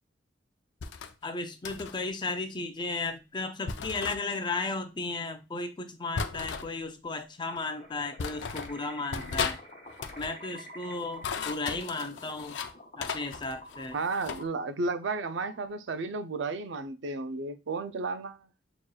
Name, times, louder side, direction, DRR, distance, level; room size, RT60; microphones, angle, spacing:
sound 1, 0.8-1.1 1.6-2.0 3.7-4.2 6.2-6.7 7.6-7.7 8.2-8.7 9.1-9.6 9.9-10.3 11.0-12.7 13.0-14.4, left 5 dB, 75° left, 0.5 m, -35 dB
voice 1, 1.2-9.6 10.2-12.7 13.0-14.0, left 3 dB, 25° left, 0.5 m, -35 dB
sound 2, 7.5-15.9, equal, 40° left, 1.4 m, -49 dB
voice 2, 13.9-18.4, right 3 dB, 75° right, 0.5 m, -33 dB
6.2 x 3.0 x 2.3 m
head